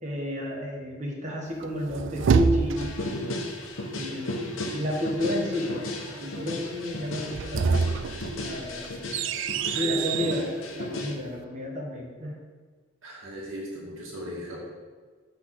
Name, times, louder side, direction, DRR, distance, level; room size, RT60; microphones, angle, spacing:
voice 1, 0.0-3.0 3.9-8.0 8.4-8.9 9.7-10.5 10.7-12.4, left 1 dB, 35° right, -1 dB, 1.3 m, -31 dB
sound 1, 1.6-3.1 7.2-10.5, right 5 dB, 65° right, 0.3 m, -27 dB
sound 2, 2.8-11.1, left 1 dB, 80° left, 1.0 m, -35 dB
voice 2, 9.7-10.3 13.0-14.6, equal, 85° right, -4 dB, 1.9 m, -37 dB
6.3 x 4.2 x 5.9 m, 1.5 s
head